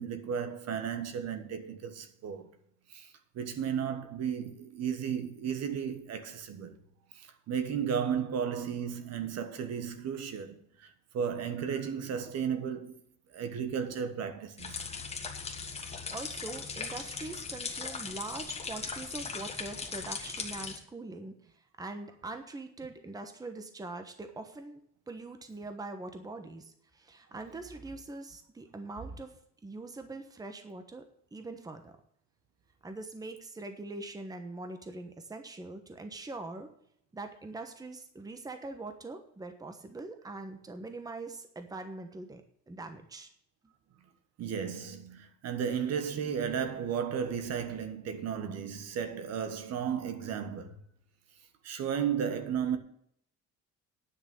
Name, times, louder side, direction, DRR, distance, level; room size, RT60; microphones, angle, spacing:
voice 1, 0.0-2.5 2.9-6.8 7.1-13.0 13.3-14.8 44.4-50.8 51.6-52.8, right 7 dB, 55° right, 1.5 m, -34 dB
sound 1, 14.6-20.8, left 5 dB, 20° left, 1.7 m, -39 dB
voice 2, 16.1-24.8 25.1-29.4 29.6-31.9 32.8-36.7 37.1-43.3 43.6-43.7, right 2 dB, 10° right, 1.1 m, -43 dB
10.0 x 6.2 x 8.8 m
cardioid pair, 160°, 30 cm